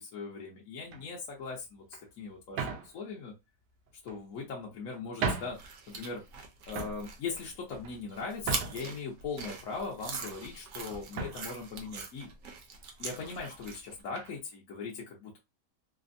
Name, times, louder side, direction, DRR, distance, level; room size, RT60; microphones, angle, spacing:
voice 1, 0.0-1.8 2.2-3.3 4.0-5.6 5.9-6.2 6.7-12.3 13.0-15.4, left 4 dB, 60° left, -3 dB, 1.1 m, -39 dB
sound 1, 0.8-1.2 1.9-2.0 2.5-2.9 3.9-4.5 4.9-5.0 5.2-5.6 6.0-6.4 6.7-7.0 7.7-8.9 9.5-10.4 10.7-10.8 11.1-11.5 12.3-12.4 12.7-12.9 14.2-14.4, right 4 dB, 85° right, 1.3 m, -37 dB
sound 2, 5.5-14.0, right 5 dB, 60° right, 0.9 m, -42 dB
3.4 x 2.1 x 2.5 m, 0.22 s
omnidirectional pair, 1.8 m